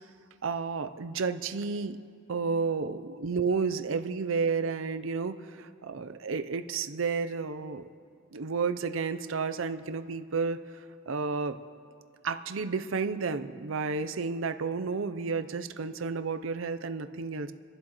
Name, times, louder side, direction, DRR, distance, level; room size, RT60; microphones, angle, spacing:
voice 1, 0.4-2.0 2.3-7.9 8.3-10.6 11.1-11.6 12.2-17.5, right 4 dB, 65° right, 10 dB, 0.6 m, -31 dB
28.5 x 11.5 x 3.1 m, 2.3 s
head